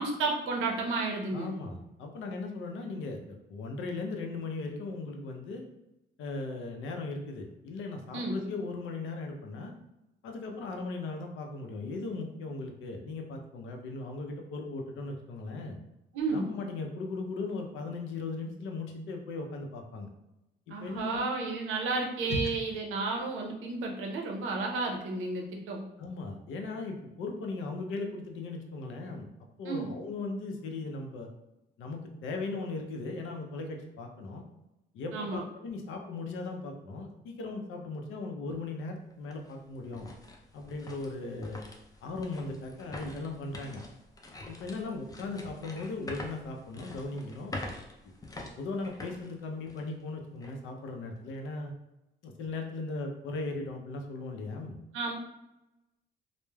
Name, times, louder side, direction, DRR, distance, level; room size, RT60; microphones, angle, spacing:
voice 1, 0.0-1.6 8.1-8.4 16.1-16.5 20.7-25.8 29.6-29.9 35.1-35.4 54.9-55.1, right 3 dB, 85° right, 1 dB, 0.6 m, -32 dB
voice 2, 1.3-5.6 6.2-9.7 10.2-15.8 16.3-20.1 20.7-21.2 22.2-22.5 26.0-29.3 29.6-31.3 31.8-34.4 34.9-40.1 40.5-41.6 42.0-43.8 44.5-47.5 48.6-51.7 52.2-54.8, left 3 dB, 80° left, 2 dB, 0.5 m, -38 dB
sound 1, 38.5-38.6 39.1-50.0 50.4-50.5 51.1-51.5, left 2 dB, 20° left, 0.4 m, -45 dB
3.1 x 2.0 x 2.2 m, 0.92 s
cardioid pair, 90°, 20 cm